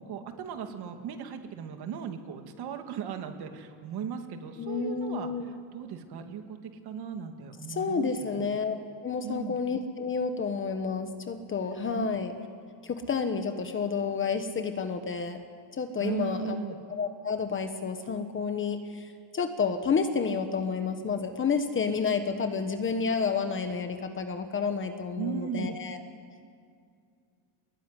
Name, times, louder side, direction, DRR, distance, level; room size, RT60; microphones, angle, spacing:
voice 1, 0.0-5.3 5.7-6.6 6.8-8.5 9.2-9.6 11.9-12.1 16.0-16.8 25.2-25.8, right 7 dB, 50° right, 6 dB, 2.4 m, -37 dB
voice 2, 4.6-5.5 7.7-8.8 9.0-12.3 12.8-15.4 15.8-26.0, left 5 dB, 25° left, 7 dB, 1.2 m, -30 dB
25.0 x 21.0 x 9.9 m, 2.3 s
cardioid pair, 180°, 50 cm